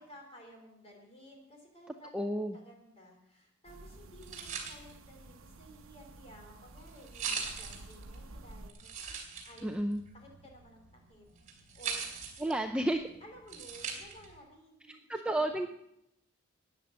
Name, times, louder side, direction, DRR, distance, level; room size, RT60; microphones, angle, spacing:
voice 1, 0.0-9.0 9.4-9.8 10.1-11.3 11.8-12.1 13.2-15.2 15.5-15.7, equal, 25° left, 2 dB, 3.5 m, -55 dB
voice 2, 2.1-2.6 9.6-10.0 12.4-13.0 14.9-15.7, right 1 dB, 5° right, 4 dB, 0.5 m, -31 dB
sound 1, 3.6-8.7, right 2 dB, 70° right, 1.0 m, -52 dB
sound 2, 3.9-14.4, right 6 dB, 35° right, 3.1 m, -43 dB
13.0 x 9.6 x 7.4 m, 0.81 s
head